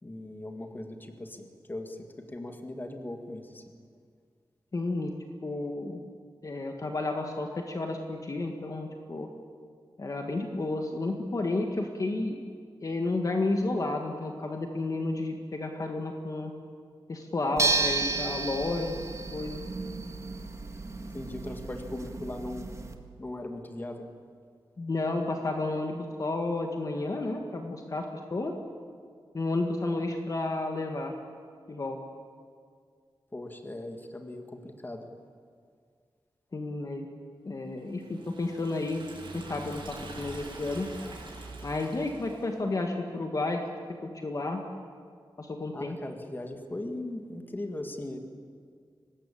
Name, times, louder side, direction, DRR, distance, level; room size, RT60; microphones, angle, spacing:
voice 1, 0.0-3.6 21.1-22.8 23.2-24.1 33.3-35.1 45.7-48.2, left 1 dB, 20° left, 4 dB, 2.1 m, -39 dB
voice 2, 4.7-5.1 5.4-6.0 6.4-9.3 10.0-12.4 12.8-16.5 17.1-19.0 19.3-19.6 24.8-28.5 29.3-31.1 31.7-32.0 36.5-37.1 37.4-39.0 39.3-40.9 41.6-43.6 44.0-44.6 45.4-46.0, left 2 dB, 40° left, 3 dB, 1.8 m, -31 dB
sound 1, 17.6-22.9, right 3 dB, 35° right, 1.7 m, -32 dB
Liquid, 37.9-42.6, right 2 dB, 65° right, 7.0 m, -44 dB
24.0 x 19.5 x 8.7 m, 2.1 s
wide cardioid pair, 145°, 9 cm